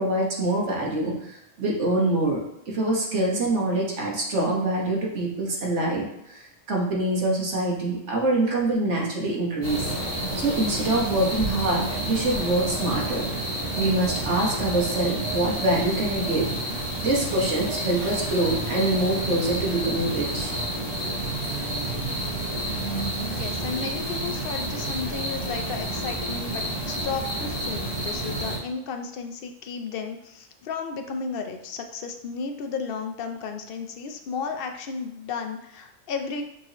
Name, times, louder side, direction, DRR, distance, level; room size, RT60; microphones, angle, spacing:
voice 1, 0.0-1.3 1.6-2.4 2.7-9.9 10.4-13.3 13.7-16.5 17.0-20.5, right 2 dB, 70° right, -2 dB, 1.5 m, -25 dB
sound 1, 9.6-28.6, right 1 dB, 45° right, 1.8 m, -30 dB
voice 2, 23.3-36.4, left 5 dB, 60° left, 5 dB, 0.6 m, -33 dB
6.2 x 2.8 x 2.9 m, 0.83 s
omnidirectional pair, 1.3 m